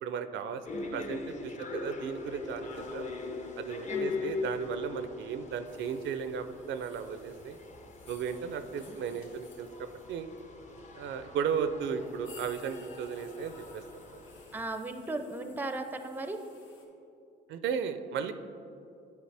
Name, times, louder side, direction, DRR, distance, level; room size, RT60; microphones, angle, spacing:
voice 1, 0.0-3.1 3.6-7.6 8.1-10.3 11.0-14.2 17.5-18.3, right 6 dB, 70° right, 10 dB, 0.4 m, -35 dB
sound 1, 0.6-14.7, left 4 dB, 35° left, 0.7 m, -41 dB
sound 2, 5.6-16.8, left 3 dB, 70° left, 1.2 m, -58 dB
voice 2, 14.5-16.4, right 2 dB, 10° right, 7 dB, 0.4 m, -37 dB
9.3 x 4.8 x 3.3 m, 2.7 s
cardioid pair, 90°, 20 cm